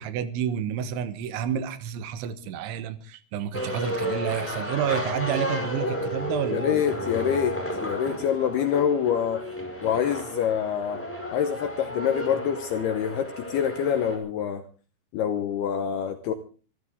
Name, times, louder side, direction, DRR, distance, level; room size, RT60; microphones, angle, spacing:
voice 1, 0.0-6.8, right 9 dB, 75° right, 12 dB, 3.4 m, -30 dB
sound 1, 3.5-14.2, equal, 5° left, 4.6 m, -32 dB
voice 2, 6.5-9.4 9.8-11.0 11.3-14.6 15.1-16.3, left 8 dB, 75° left, 8 dB, 2.5 m, -26 dB
25.0 x 13.0 x 3.7 m, 0.37 s
omnidirectional pair, 5.6 m